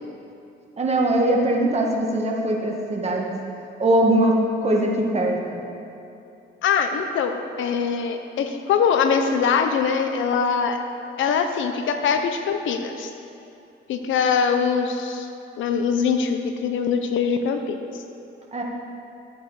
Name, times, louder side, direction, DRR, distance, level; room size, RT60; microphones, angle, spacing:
voice 1, 0.8-3.3 3.8-5.6 18.5-18.6, right 1 dB, 35° right, -1 dB, 1.9 m, -21 dB
voice 2, 6.6-10.8 11.2-13.1 13.9-15.3 15.6-17.9, left 6 dB, 75° left, 6 dB, 0.9 m, -22 dB
13.0 x 8.2 x 4.9 m, 2.8 s
cardioid pair, 90°, 20 cm